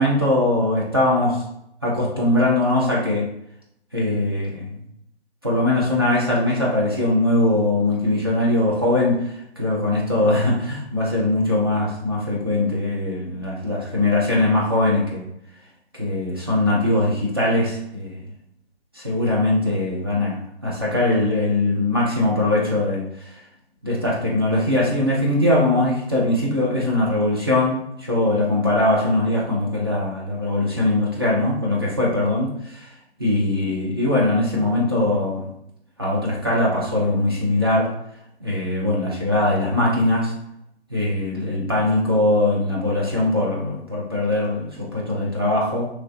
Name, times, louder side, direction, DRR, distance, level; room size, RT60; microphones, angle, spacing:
voice 1, 0.0-1.4 1.8-3.3 3.9-4.8 5.4-15.3 15.9-18.2 18.9-23.4 23.8-32.9 33.2-35.5 36.0-38.0 38.4-40.3 40.9-45.9, left 1 dB, 25° right, -5 dB, 0.5 m, -21 dB
3.0 x 2.8 x 2.4 m, 0.77 s
figure-of-eight pair, 145°, 33 cm